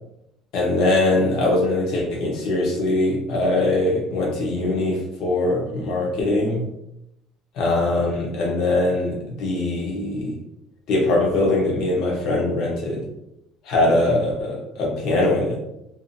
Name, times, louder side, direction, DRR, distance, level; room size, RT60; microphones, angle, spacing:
voice 1, 0.5-6.7 7.5-10.3 10.9-13.0 13.6-15.6, left 2 dB, 50° left, -1 dB, 0.8 m, -22 dB
2.6 x 2.4 x 2.6 m, 0.83 s
cardioid pair, 175°, 0 cm